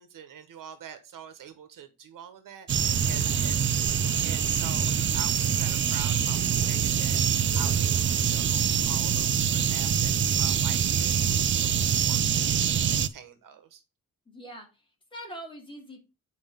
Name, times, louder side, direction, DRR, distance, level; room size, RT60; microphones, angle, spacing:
voice 1, 0.0-3.7 4.2-13.8, right 8 dB, 70° right, 10 dB, 1.3 m, -46 dB
sound 1, 2.7-13.1, right 8 dB, 35° right, 0.4 m, -25 dB
voice 2, 14.3-16.0, right 1 dB, 15° left, 1 dB, 2.8 m, -43 dB
8.8 x 5.1 x 3.6 m, 0.28 s
wide cardioid pair, 170°, 33 cm